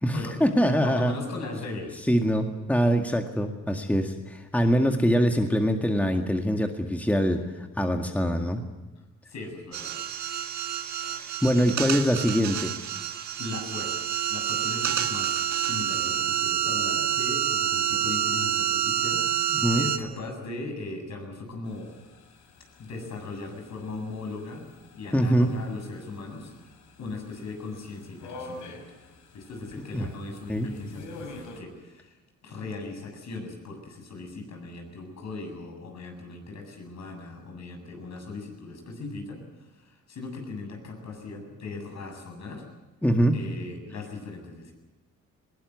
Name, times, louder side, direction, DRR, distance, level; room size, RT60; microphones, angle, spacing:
voice 1, 0.0-1.1 2.1-8.6 11.0-12.7 19.5-19.9 25.1-25.5 29.9-30.1 30.5-30.7 43.0-43.4, equal, 5° left, 4 dB, 1.9 m, -24 dB
voice 2, 0.8-2.1 9.3-9.9 13.4-21.9 22.8-24.7 24.9-26.7 27.0-28.8 29.3-42.7 43.3-44.7, left 3 dB, 65° left, 3 dB, 7.8 m, -38 dB
sound 1, 9.7-20.0, right 10 dB, 70° right, 1.7 m, -28 dB
sound 2, 21.6-31.6, left 2 dB, 80° left, 4.6 m, -48 dB
20.5 x 18.5 x 9.7 m, 1.1 s
cardioid pair, 90°, 30 cm